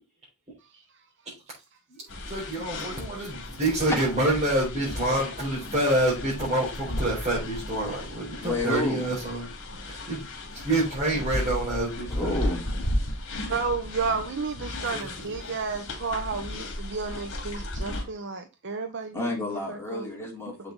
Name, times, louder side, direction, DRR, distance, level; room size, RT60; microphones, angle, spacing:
voice 1, 1.9-10.3 10.5-12.4 14.9-15.3 15.8-15.9, right 1 dB, 30° right, 5.0 m, -27 dB
sound 1, 2.1-18.0, left 1 dB, 65° left, 2.4 m, -35 dB
voice 2, 8.4-9.1 12.1-12.6 19.1-20.7, left 2 dB, 10° left, 3.7 m, -30 dB
voice 3, 13.5-19.3 19.7-20.1 20.5-20.6, right 4 dB, 55° right, 0.9 m, -32 dB
7.5 x 5.9 x 4.0 m
head